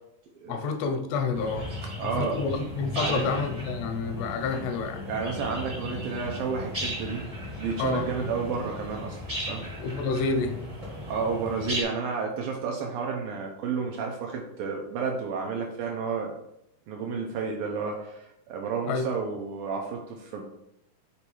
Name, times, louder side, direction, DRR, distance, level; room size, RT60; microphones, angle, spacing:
voice 1, 0.5-1.7 2.0-5.1 7.8-8.1 9.8-10.6 18.9-19.1, left 4 dB, 90° left, 7 dB, 2.9 m, -29 dB
sound 1, 1.3-11.8, left 1 dB, 30° right, 0.6 m, -36 dB
voice 2, 2.0-2.4 3.0-3.3 5.1-7.3 7.6-9.7 11.1-16.3 16.9-20.5, right 5 dB, 75° right, 1 dB, 2.1 m, -31 dB
7.0 x 3.9 x 4.5 m, 0.83 s
omnidirectional pair, 4.7 m